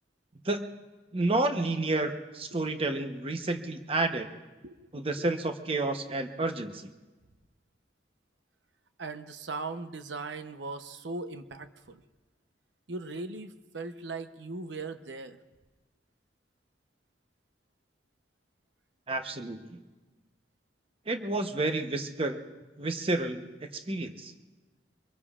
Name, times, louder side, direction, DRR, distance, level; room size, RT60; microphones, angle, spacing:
voice 1, 1.1-4.3 4.9-6.9 19.1-19.8 21.1-22.4 22.8-24.3, right 2 dB, 30° right, 6 dB, 0.9 m, -30 dB
voice 2, 9.0-12.0 12.9-15.4, right 3 dB, 90° right, 9 dB, 0.9 m, -39 dB
25.0 x 22.5 x 2.5 m, 1.2 s
head